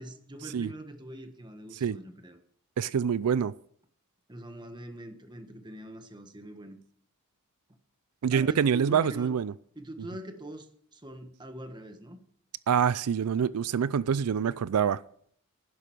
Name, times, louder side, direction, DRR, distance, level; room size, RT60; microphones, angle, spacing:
voice 1, 0.0-2.4 4.3-6.8 8.3-9.3 9.7-12.2, right 1 dB, 20° right, 1.4 m, -43 dB
voice 2, 2.8-3.5 8.2-9.5 12.7-15.0, right 7 dB, 90° right, 0.4 m, -26 dB
11.5 x 10.0 x 6.2 m
head